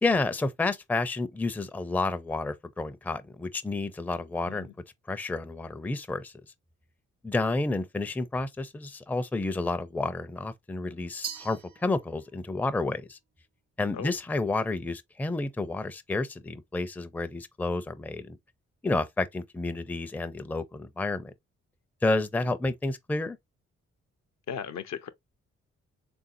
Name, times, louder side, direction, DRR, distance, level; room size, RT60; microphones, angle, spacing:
voice 1, 0.0-4.7 5.1-6.3 7.2-13.2 13.8-18.4 18.8-21.3 22.0-23.4, left 2 dB, 5° left, 0.4 m, -30 dB
Glass, 11.2-12.5, right 8 dB, 85° right, 0.6 m, -41 dB
voice 2, 24.5-25.1, left 7 dB, 60° left, 0.5 m, -37 dB
3.5 x 2.6 x 2.6 m
supercardioid pair, 45°, 31 cm